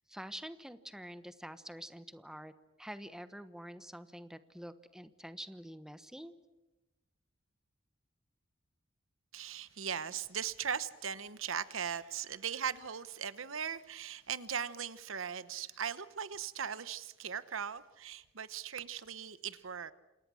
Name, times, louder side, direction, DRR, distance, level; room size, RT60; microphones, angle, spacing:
voice 1, 0.1-2.5 2.8-6.3, equal, 5° right, 11 dB, 1.1 m, -47 dB
voice 2, 9.3-19.9, right 7 dB, 80° right, 14 dB, 1.0 m, -39 dB
28.0 x 28.0 x 6.4 m, 1.1 s
head